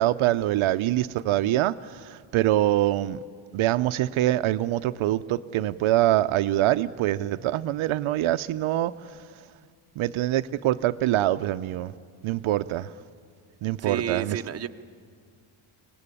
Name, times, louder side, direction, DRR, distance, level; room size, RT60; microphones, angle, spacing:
voice 1, 0.0-3.2 3.5-8.9 10.0-11.9 12.2-12.9 13.6-14.4, right 14 dB, 75° right, 11 dB, 0.7 m, -24 dB
voice 2, 13.8-14.7, right 9 dB, 30° right, 7 dB, 0.7 m, -31 dB
24.0 x 18.0 x 9.8 m, 2.1 s
cardioid pair, 150°, 50 cm